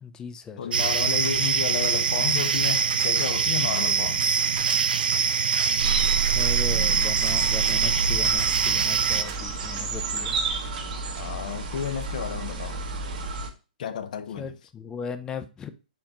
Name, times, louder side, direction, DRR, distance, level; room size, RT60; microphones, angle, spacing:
voice 1, 0.0-0.6 5.6-6.0 6.2-10.4 14.4-15.7, left 6 dB, 15° left, 0.4 m, -37 dB
voice 2, 0.6-4.4 6.7-7.0 11.2-12.8 13.8-14.5, left 8 dB, 60° left, 0.6 m, -32 dB
sound 1, 0.7-9.2, right 6 dB, 90° right, 0.4 m, -24 dB
sound 2, 0.8-11.2, right 7 dB, 40° right, 0.7 m, -41 dB
sound 3, 5.8-13.5, right 5 dB, 65° right, 1.0 m, -30 dB
4.3 x 3.7 x 2.8 m
hypercardioid pair, 145°, 5 cm